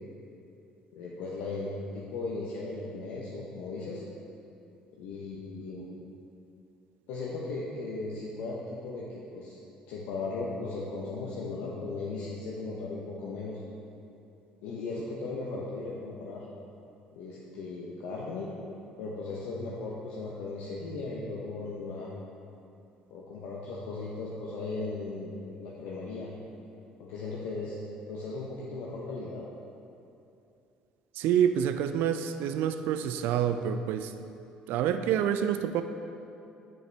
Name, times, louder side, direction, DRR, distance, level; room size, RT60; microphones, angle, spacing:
voice 1, 0.9-4.0 5.0-5.9 7.1-9.6 9.9-13.6 14.6-16.4 17.1-18.5 19.0-22.1 23.1-25.3 25.6-26.3 27.0-27.8 28.1-29.5, left 3 dB, 75° left, -4 dB, 0.8 m, -37 dB
voice 2, 31.2-34.1 34.7-35.8, right 9 dB, 70° right, 9 dB, 0.3 m, -27 dB
7.5 x 6.5 x 3.4 m, 2.7 s
hypercardioid pair, 60°, 4 cm